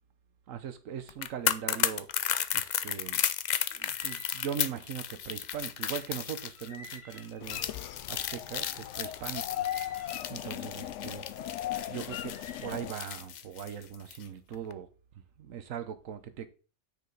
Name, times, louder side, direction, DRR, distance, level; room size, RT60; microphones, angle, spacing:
voice 1, 0.5-2.1 2.5-3.2 3.7-7.6 8.1-9.7 10.3-11.2 11.9-14.9 15.4-16.5, right 8 dB, 75° right, 1.3 m, -40 dB
sound 1, 1.1-14.2 14.5-14.7, left 9 dB, 85° left, 0.4 m, -34 dB
sound 2, 3.8-4.7 6.5-7.6 9.5-10.5 12.2-12.7, left 1 dB, 20° left, 2.7 m, -51 dB
sound 3, 7.4-12.9, left 12 dB, 70° left, 0.8 m, -38 dB
9.4 x 5.0 x 3.9 m
omnidirectional pair, 1.4 m